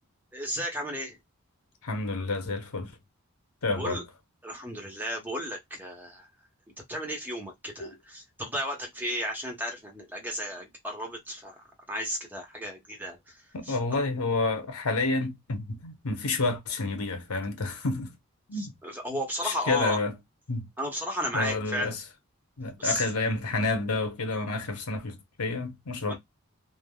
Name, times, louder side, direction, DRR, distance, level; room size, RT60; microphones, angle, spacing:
voice 1, 0.3-1.2 3.8-4.0 4.4-6.3 6.9-13.4 13.6-13.8 18.6-20.0 20.8-21.9 22.8-23.1 26.0-26.2, equal, 10° right, 0.8 m, -34 dB
voice 2, 1.8-3.0 3.6-4.0 7.8-7.9 13.5-18.1 18.5-18.7 19.4-20.1 20.5-20.7 21.3-22.0 22.6-26.2, left 3 dB, 80° left, 0.8 m, -29 dB
3.3 x 2.0 x 2.2 m
head